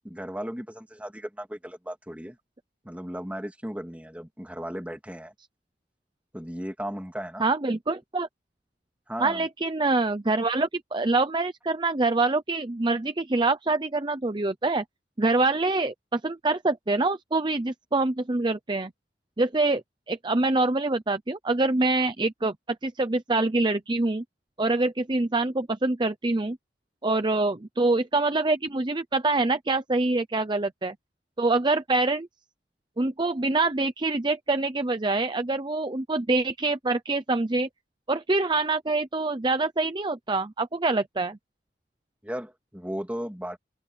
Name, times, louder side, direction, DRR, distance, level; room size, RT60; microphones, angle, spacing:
voice 1, 0.0-2.4 2.8-5.3 6.3-7.4 9.1-9.5 42.2-43.6, equal, 10° right, 2.9 m, -36 dB
voice 2, 7.4-8.3 9.2-14.8 15.2-18.9 19.4-22.5 22.8-24.2 24.6-26.6 27.0-30.9 31.4-32.3 33.0-37.7 38.1-41.4, right 2 dB, 25° right, 0.7 m, -25 dB
head